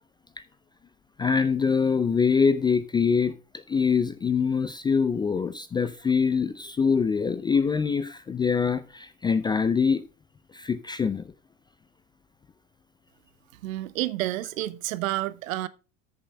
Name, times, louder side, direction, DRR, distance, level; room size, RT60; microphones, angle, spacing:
voice 1, 1.2-10.0 10.5-11.2, left 5 dB, 10° left, 0.3 m, -24 dB
voice 2, 13.6-15.7, right 16 dB, 70° right, 0.9 m, -29 dB
13.5 x 6.9 x 2.2 m
hypercardioid pair, 90°, 41 cm